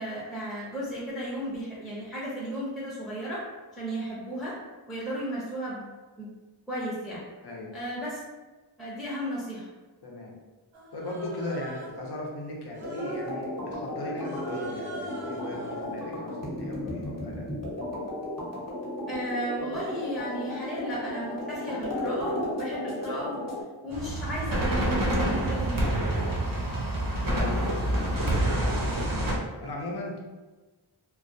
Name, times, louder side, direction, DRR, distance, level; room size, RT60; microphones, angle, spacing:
voice 1, 0.0-3.4 3.7-4.5 4.9-5.9 6.2-6.3 6.7-7.2 7.7-8.2 8.8-9.7 19.1-23.4 23.8-26.2, equal, ahead, -7 dB, 0.6 m, -34 dB
voice 2, 7.4-7.8 10.0-10.4 10.9-17.4 27.3-27.9 28.8-30.2, left 1 dB, 55° left, -2 dB, 0.7 m, -38 dB
Human voice, 10.7-12.1 12.7-13.4 14.2-15.9, right 1 dB, 80° right, 0.9 m, -43 dB
sound 1, 12.8-23.6, left 1 dB, 35° left, 0.9 m, -34 dB
sound 2, 23.9-29.4, right 1 dB, 45° right, 0.6 m, -27 dB
2.3 x 2.2 x 2.6 m, 1.2 s
wide cardioid pair, 40°, 47 cm